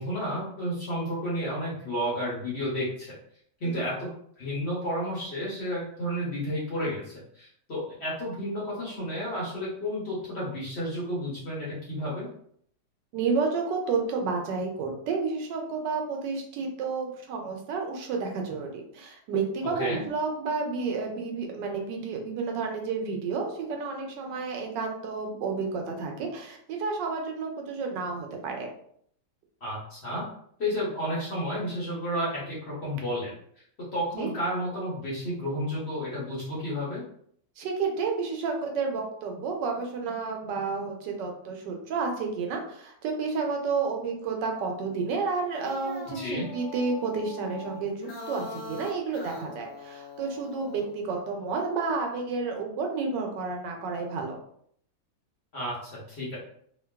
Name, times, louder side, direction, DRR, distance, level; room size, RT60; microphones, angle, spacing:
voice 1, 0.0-3.1 3.6-4.1 4.4-12.3 19.8-20.0 29.6-30.2 30.6-33.3 33.9-37.0 46.0-46.5 55.5-56.4, equal, 50° left, -7 dB, 0.9 m, -31 dB
voice 2, 13.1-28.7 34.1-34.3 37.6-54.4, right 4 dB, 90° right, 2 dB, 1.3 m, -31 dB
sound 1, 45.4-50.9, left 2 dB, 70° left, 0.6 m, -42 dB
2.9 x 2.2 x 2.2 m, 0.65 s
omnidirectional pair, 1.9 m